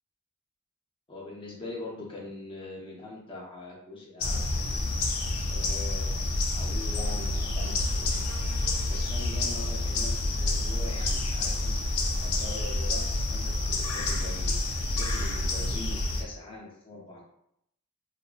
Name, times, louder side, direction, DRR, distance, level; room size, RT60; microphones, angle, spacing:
voice 1, 1.1-5.0 5.5-17.2, left 2 dB, 25° left, -4 dB, 0.6 m, -43 dB
sound 1, 4.2-16.2, left 2 dB, 85° left, 0.5 m, -28 dB
2.6 x 2.3 x 2.4 m, 0.77 s
head